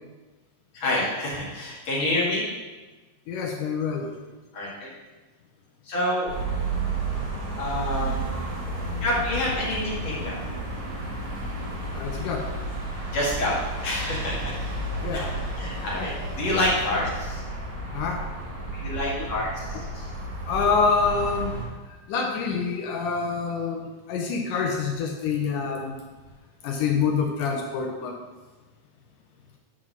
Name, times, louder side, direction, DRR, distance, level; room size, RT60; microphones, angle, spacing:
voice 1, 0.7-2.4 4.5-4.7 5.9-6.3 7.6-8.3 9.0-10.4 13.1-13.5 13.8-14.5 15.1-15.2 15.6-16.1 16.4-17.4 18.7-20.1, left 1 dB, 50° left, -5 dB, 2.5 m, -27 dB
voice 2, 3.3-4.1 11.9-12.5 15.0-15.4 17.9-18.2 19.7-19.8 20.5-21.5 22.1-26.0 26.6-28.2, left 5 dB, 75° left, 2 dB, 2.0 m, -26 dB
sound 1, 6.3-21.6, right 2 dB, 90° right, 4.7 m, -32 dB
9.9 x 3.7 x 6.1 m, 1.2 s
omnidirectional pair, 4.4 m